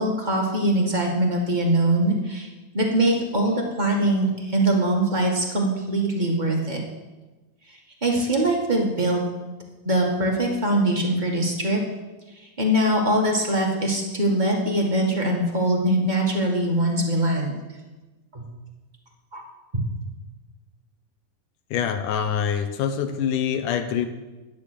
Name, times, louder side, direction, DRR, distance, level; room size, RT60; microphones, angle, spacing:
voice 1, 0.0-2.5 2.7-6.8 8.0-9.2 9.8-11.8 12.6-17.5 18.3-18.4 19.3-19.4, right 1 dB, 25° right, 0 dB, 1.0 m, -22 dB
voice 2, 21.7-24.1, left 8 dB, 75° left, 8 dB, 2.3 m, -25 dB
12.0 x 10.5 x 6.8 m, 1.2 s
omnidirectional pair, 4.0 m